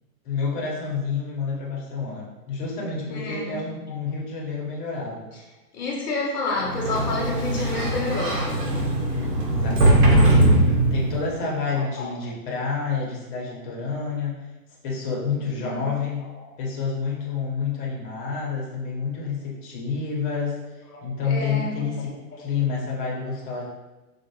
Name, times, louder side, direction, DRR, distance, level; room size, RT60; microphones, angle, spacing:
voice 1, 0.2-5.3 9.1-14.4 14.8-16.3 16.6-20.6 21.0-23.6, left 5 dB, 30° left, -3 dB, 1.0 m, -29 dB
voice 2, 3.1-3.6 3.9-4.0 5.7-8.6 11.8-12.1 15.3-15.9 16.4-16.5 17.4-17.5 20.9-21.7 22.4-22.5, left 3 dB, 70° left, -3 dB, 1.1 m, -30 dB
Sliding door, 6.6-11.3, right 1 dB, 70° right, 1.1 m, -20 dB
4.5 x 2.5 x 3.0 m, 1.1 s
figure-of-eight pair, 120°, 49 cm